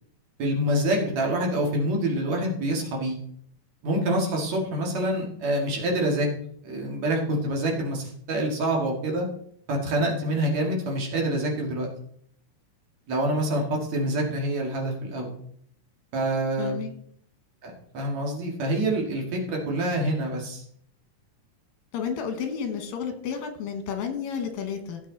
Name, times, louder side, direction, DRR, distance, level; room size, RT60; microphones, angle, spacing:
voice 1, 0.4-3.2 3.8-6.3 6.6-9.3 9.7-11.9 13.1-15.3 16.1-16.8 17.6-20.6, right 1 dB, 55° right, 0 dB, 3.3 m, -26 dB
voice 2, 16.6-16.9 21.9-25.0, left 7 dB, 85° left, 6 dB, 3.3 m, -31 dB
16.0 x 7.5 x 4.1 m, 0.65 s
omnidirectional pair, 3.9 m